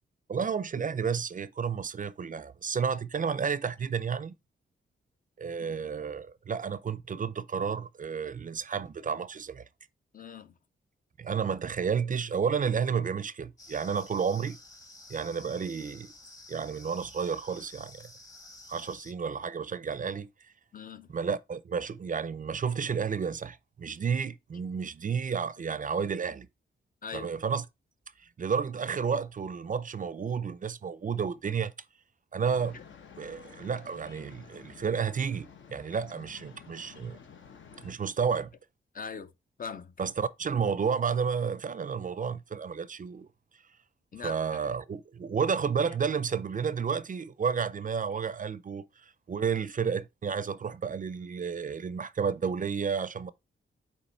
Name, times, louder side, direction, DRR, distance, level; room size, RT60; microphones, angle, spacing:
voice 1, 0.3-4.3 5.4-9.6 11.2-14.6 15.1-16.1 16.5-18.1 18.7-20.3 21.1-26.5 27.1-27.6 28.4-31.7 32.3-32.8 33.2-37.2 37.8-38.5 40.0-43.3 44.2-53.3, right 6 dB, 40° right, 0.5 m, -31 dB
voice 2, 10.1-10.5 20.7-21.2 27.0-27.3 32.7-32.8 38.9-39.3 39.6-39.9 44.1-44.6, left 6 dB, 40° left, 0.6 m, -41 dB
sound 1, 13.6-19.1, left 2 dB, 15° left, 0.9 m, -51 dB
sound 2, 32.4-38.0, left 7 dB, 65° left, 1.0 m, -51 dB
8.3 x 3.0 x 4.4 m
wide cardioid pair, 105°, 21 cm